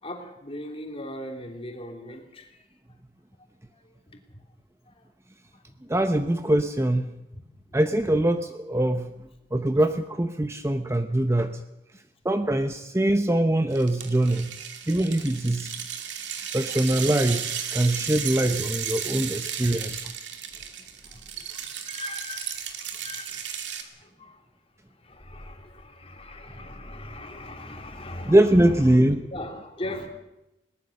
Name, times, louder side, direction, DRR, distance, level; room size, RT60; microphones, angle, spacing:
voice 1, 0.0-2.6 3.8-4.4 4.9-5.0 5.5-5.7 7.3-7.4 7.7-7.8 19.4-19.8 20.5-20.6 21.0-21.6 21.8-24.4 25.0-30.1, left 1 dB, 30° left, 3 dB, 3.1 m, -40 dB
voice 2, 5.9-7.1 7.7-9.1 9.5-11.6 12.2-14.6 14.9-15.7 16.5-20.1 28.3-29.2, right 1 dB, 15° right, 8 dB, 0.8 m, -23 dB
sound 1, 13.7-23.8, right 8 dB, 75° right, 2.4 m, -34 dB
21.5 x 19.0 x 6.6 m, 0.92 s
head